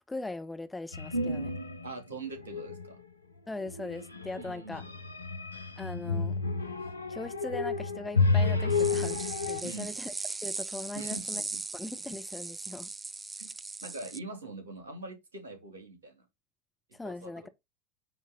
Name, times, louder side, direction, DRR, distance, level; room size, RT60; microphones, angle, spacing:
voice 1, 0.1-1.5 3.5-4.8 5.8-6.3 7.1-9.2 9.5-10.1 10.4-11.4 11.7-12.9 16.9-17.4, left 2 dB, 10° left, 0.8 m, -39 dB
sound 1, 0.9-1.9 2.3-2.9 3.6-9.6, left 3 dB, 90° left, 0.6 m, -31 dB
voice 2, 1.8-3.0 4.4-4.9 6.8-6.9 9.6-9.9 10.9-11.6 13.4-13.5 13.8-16.2 17.0-17.5, right 3 dB, 75° right, 2.4 m, -43 dB
sound 2, 8.7-14.2, right 3 dB, 15° right, 0.4 m, -39 dB
9.1 x 3.1 x 5.3 m
figure-of-eight pair, 75°, 0 cm